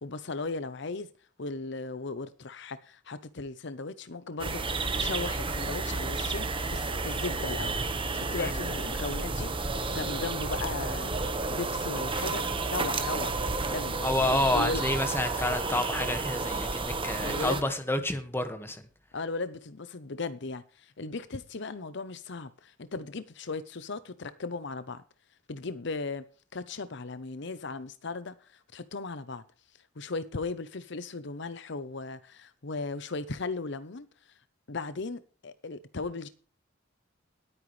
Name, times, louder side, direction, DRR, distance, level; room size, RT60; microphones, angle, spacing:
voice 1, 0.0-1.1 1.4-7.8 8.1-9.5 9.9-11.1 11.5-13.4 13.7-14.8 17.2-17.7 19.1-25.0 25.5-26.2 26.5-29.4 30.0-34.1 34.7-36.3, left 3 dB, 65° left, 0.8 m, -37 dB
sound 1, 4.4-17.6, right 3 dB, 25° right, 1.3 m, -31 dB
voice 2, 14.0-18.8, left 1 dB, 10° left, 1.7 m, -29 dB
19.5 x 9.2 x 3.3 m
head